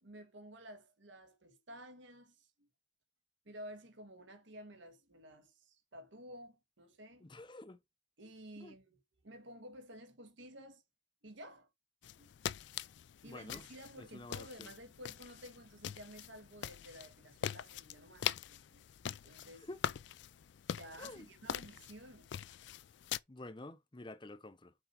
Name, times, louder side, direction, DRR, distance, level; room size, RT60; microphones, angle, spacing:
voice 1, 0.0-2.7 3.4-7.3 8.2-9.0 9.2-10.8 11.2-11.7 12.0-12.5 12.8-12.9 13.2-18.9 19.2-19.7 20.7-22.4, equal, 70° right, 1.5 m, -53 dB
voice 2, 7.2-7.8 8.6-8.7 13.3-13.6 14.0-14.7 19.6-19.8 21.0-21.3 23.3-24.7, left 2 dB, 25° left, 0.6 m, -49 dB
sound 1, 12.0-23.2, left 9 dB, 65° left, 0.3 m, -43 dB
5.9 x 4.5 x 4.4 m
head